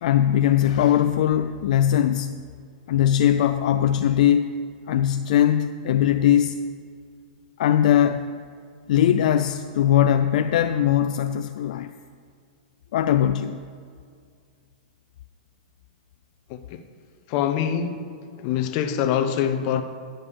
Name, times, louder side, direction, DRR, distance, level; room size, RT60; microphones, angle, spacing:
voice 1, 0.0-2.4 2.9-4.5 4.9-6.6 7.6-8.3 8.9-11.9 12.9-13.6, left 10 dB, 65° left, 0.3 m, -20 dB
voice 2, 17.3-18.1 18.4-19.8, left 9 dB, 40° left, 0.7 m, -24 dB
10.0 x 5.2 x 7.0 m
hypercardioid pair, 140°, 4 cm